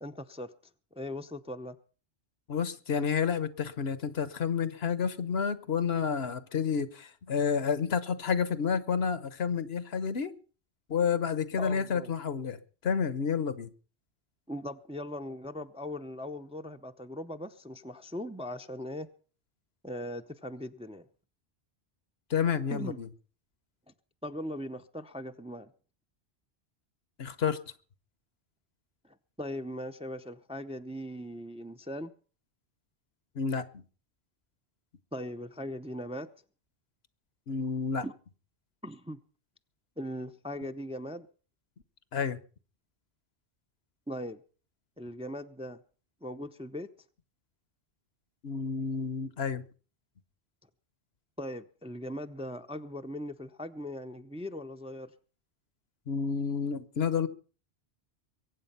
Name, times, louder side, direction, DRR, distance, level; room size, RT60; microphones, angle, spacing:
voice 1, 0.0-0.5 0.9-1.8 11.6-12.1 14.5-19.1 19.8-21.1 22.7-23.0 24.2-25.7 29.0-32.1 35.1-36.3 38.0-38.1 38.8-39.2 40.0-41.3 44.1-44.4 45.0-45.8 46.2-46.9 51.4-55.1, equal, 5° right, 0.6 m, -39 dB
voice 2, 2.5-10.3 10.9-12.6 12.8-13.7 22.3-23.1 27.2-27.6 33.3-33.8 37.5-38.0 42.1-42.4 48.4-49.6 56.1-57.3, left 6 dB, 70° left, 1.2 m, -30 dB
22.5 x 8.8 x 5.6 m
omnidirectional pair, 1.1 m